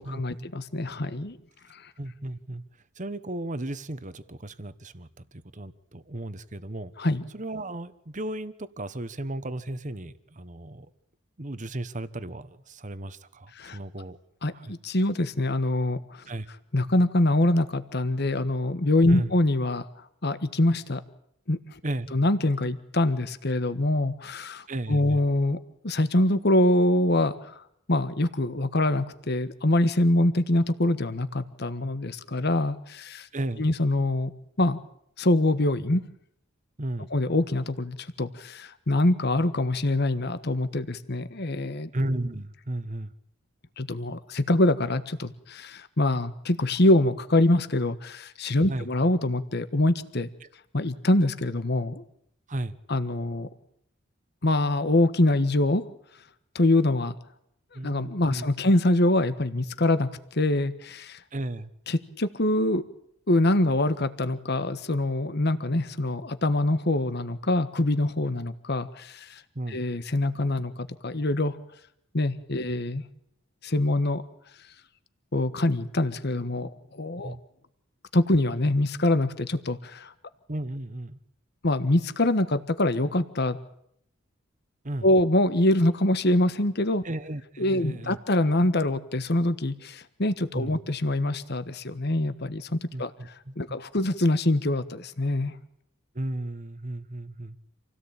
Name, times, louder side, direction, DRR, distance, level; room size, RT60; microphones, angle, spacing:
voice 1, 0.0-1.4 1.7-1.9 7.0-7.2 13.6-13.8 14.4-16.2 16.7-19.8 20.2-21.0 21.5-21.6 22.1-25.6 25.8-33.3 33.6-34.3 34.6-34.8 35.2-36.0 37.1-41.9 43.8-50.3 50.7-52.0 52.9-53.5 54.4-55.8 56.5-57.1 57.8-61.2 61.9-62.8 63.3-69.4 69.7-71.6 72.1-73.0 73.6-74.2 75.3-77.3 78.1-80.1 81.6-83.6 85.0-87.0 87.6-93.1 93.6-95.5, left 1 dB, 55° left, 12 dB, 1.4 m, -24 dB
voice 2, 2.0-2.6 3.0-6.9 7.3-10.9 11.4-14.2 14.5-14.7 16.3-16.5 19.1-19.3 21.8-22.1 24.7-25.2 33.3-33.7 36.8-37.1 41.9-43.1 48.7-48.9 52.5-52.7 57.7-58.4 61.3-61.7 69.5-69.8 72.6-72.7 77.2-77.4 80.5-81.2 84.8-85.1 87.0-88.2 90.5-90.8 92.9-93.8 96.1-97.6, right 1 dB, 40° right, 13 dB, 1.3 m, -34 dB
27.5 x 17.5 x 8.9 m, 0.71 s
head